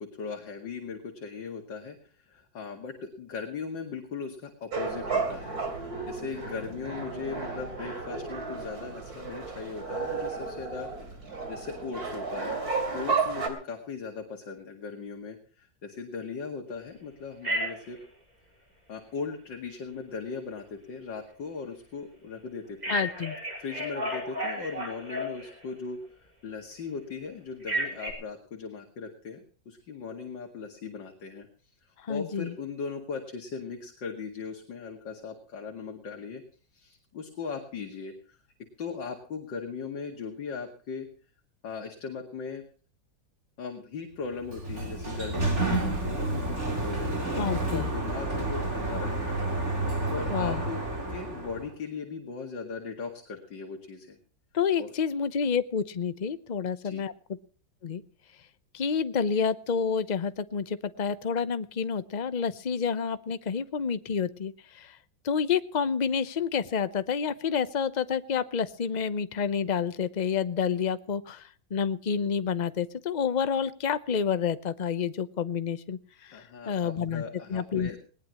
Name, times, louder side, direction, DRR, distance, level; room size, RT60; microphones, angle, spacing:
voice 1, 0.2-10.9 11.5-12.6 12.9-18.0 18.9-23.1 23.6-31.5 31.8-36.4 36.7-38.4 38.8-41.1 41.6-42.6 43.6-49.4 50.1-50.8 51.1-54.2 54.8-54.9 56.8-57.0 76.3-78.0, left 5 dB, 70° left, 2 dB, 2.8 m, -38 dB
sound 1, 4.7-13.5, right 4 dB, 50° right, 3.6 m, -33 dB
Telephone, 17.4-18.0 22.8-25.7 27.6-28.1, right 1 dB, 20° right, 5.0 m, -32 dB
voice 2, 22.9-23.4 32.0-32.5 47.4-47.9 50.3-50.6 54.5-57.1 57.8-58.0 58.7-65.0 65.2-77.2 77.5-78.0, left 6 dB, 50° left, 13 dB, 0.5 m, -29 dB
Sliding door, 44.3-51.7, right 2 dB, 35° right, 3.9 m, -30 dB
20.0 x 19.0 x 3.0 m, 0.41 s
omnidirectional pair, 2.0 m